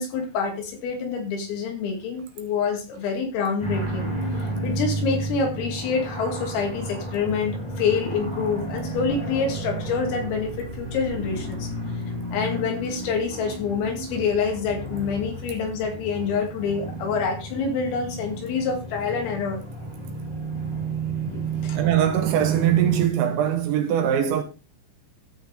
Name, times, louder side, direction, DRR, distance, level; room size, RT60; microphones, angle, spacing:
voice 1, 0.0-4.1 4.6-11.7 12.3-19.6 21.3-21.8, left 5 dB, 80° left, 5.0 m, -27 dB
sound 1, 3.6-23.1, right 3 dB, 10° left, 2.3 m, -31 dB
voice 2, 21.7-24.4, right 10 dB, 75° right, 3.0 m, -22 dB
13.5 x 7.7 x 3.5 m
omnidirectional pair, 5.9 m